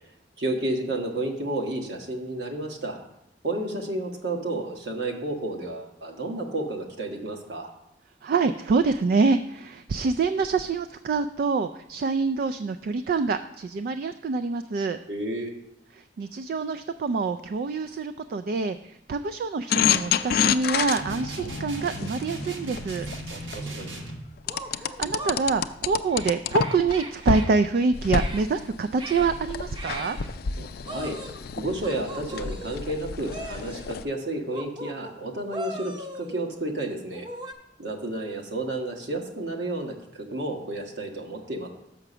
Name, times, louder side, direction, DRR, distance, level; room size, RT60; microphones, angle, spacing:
voice 1, 0.4-3.0 3.4-7.7 15.1-15.5 23.3-24.0 30.6-31.2 31.6-37.3 37.8-41.7, right 2 dB, 70° right, 2 dB, 1.3 m, -31 dB
voice 2, 8.2-15.0 16.0-23.1 24.7-30.2, right 4 dB, 55° right, 11 dB, 0.3 m, -26 dB
sound 1, 19.7-23.6 24.5-26.9 27.3-27.5 27.9-34.0, left 7 dB, 55° left, 0.4 m, -29 dB
sound 2, 20.9-24.3, right 2 dB, 90° right, 1.4 m, -37 dB
sound 3, 23.6-23.7 24.5-25.4 26.1-27.5 28.1-28.4 29.0-29.3 29.8-30.3 30.9-31.5 31.8-32.9 33.3-33.9 34.5-35.2 35.5-36.5 37.1-37.5, right 1 dB, 25° right, 0.7 m, -38 dB
6.0 x 5.8 x 6.7 m, 0.84 s
head